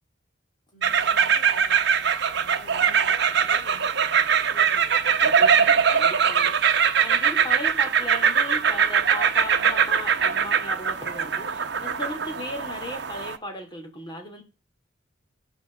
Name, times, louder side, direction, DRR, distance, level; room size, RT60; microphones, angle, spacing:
voice 1, 0.7-6.0, equal, 40° left, -2 dB, 5.1 m, -49 dB
sound 1, 0.8-13.4, right 7 dB, 55° right, 1.0 m, -22 dB
voice 2, 5.4-6.5 7.0-14.4, left 1 dB, 25° left, 3 dB, 3.1 m, -36 dB
13.5 x 7.7 x 7.5 m, 0.35 s
head